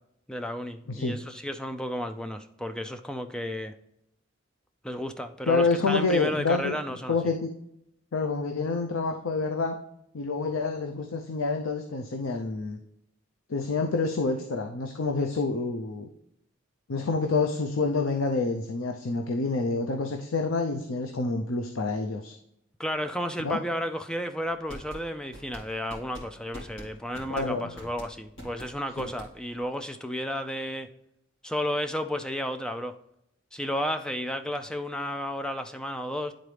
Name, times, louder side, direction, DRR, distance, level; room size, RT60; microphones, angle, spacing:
voice 1, 0.3-3.7 4.8-7.2 22.8-30.9 31.4-33.0 33.5-36.3, equal, 5° left, 8 dB, 0.3 m, -32 dB
voice 2, 5.5-6.8 7.1-7.5 8.1-9.8 10.1-12.8 13.5-16.1 16.9-22.3 23.4-23.6 27.3-27.7 29.0-29.1, left 3 dB, 80° left, 4 dB, 0.6 m, -28 dB
sound 1, 24.5-29.6, equal, 60° left, 2.3 m, -44 dB
10.5 x 3.9 x 3.3 m, 0.78 s
head